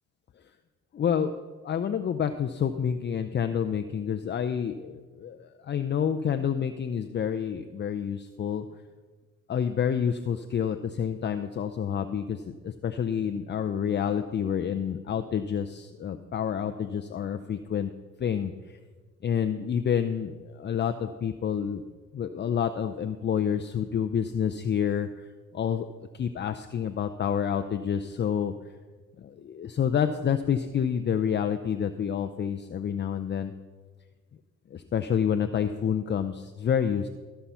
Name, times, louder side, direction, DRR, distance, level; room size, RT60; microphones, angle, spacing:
voice 1, 0.9-1.3 1.6-8.6 9.5-17.9 18.2-18.8 19.2-21.8 22.1-25.3 25.5-25.9 26.1-28.5 29.2-33.5 34.7-37.1, left 8 dB, 40° left, 7 dB, 0.5 m, -28 dB
14.5 x 5.7 x 5.7 m, 1.4 s
cardioid pair, 90°, 29 cm